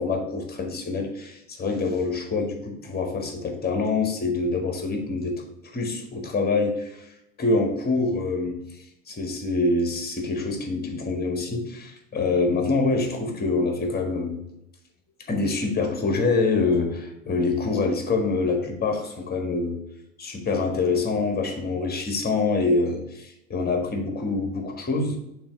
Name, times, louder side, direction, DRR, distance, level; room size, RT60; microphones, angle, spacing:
voice 1, 0.0-7.1 7.4-8.6 9.1-14.4 15.3-19.8 20.2-25.2, left 3 dB, 25° left, 4 dB, 1.6 m, -25 dB
6.8 x 3.0 x 5.7 m, 0.83 s
hypercardioid pair, 75°, 39 cm